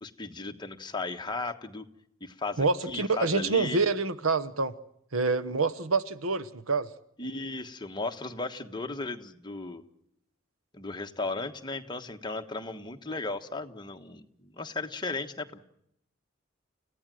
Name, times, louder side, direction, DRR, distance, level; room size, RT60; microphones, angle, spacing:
voice 1, 0.0-1.8 2.2-3.8 7.2-9.8 10.7-15.6, left 3 dB, 20° left, 1.3 m, -36 dB
voice 2, 2.6-4.8 5.1-6.9, right 3 dB, 90° right, 1.1 m, -27 dB
30.0 x 16.0 x 7.6 m
head